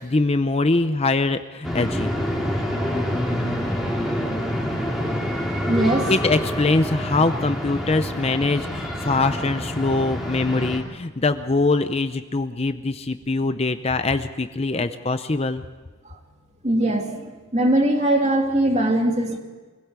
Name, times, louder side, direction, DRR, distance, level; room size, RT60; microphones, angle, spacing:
voice 1, 0.0-2.1 6.1-15.6, left 3 dB, 30° left, 10 dB, 0.6 m, -23 dB
sound 1, 1.6-10.8, equal, ahead, 3.3 m, -27 dB
voice 2, 5.7-6.1 13.4-13.5 14.8-14.9 16.1-16.2 16.6-19.4, right 1 dB, 35° right, 3 dB, 2.5 m, -21 dB
24.5 x 16.5 x 8.2 m, 1.3 s
head